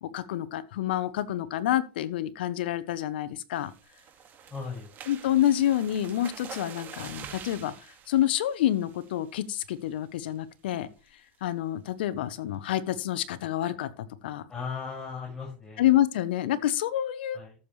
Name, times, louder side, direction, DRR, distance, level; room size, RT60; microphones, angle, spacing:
voice 1, 0.0-3.7 5.1-7.7 8.1-10.9 11.4-13.9 14.2-14.4 15.8-17.4, left 12 dB, 80° left, 1.0 m, -28 dB
sound 1, 3.5-9.3 9.7-10.0 10.3-10.4 10.8-11.1, right 8 dB, 35° right, 2.1 m, -46 dB
voice 2, 4.5-4.9 14.5-15.9 17.3-17.5, left 5 dB, 15° left, 6.2 m, -37 dB
14.0 x 7.2 x 3.3 m
supercardioid pair, 115°, 5 cm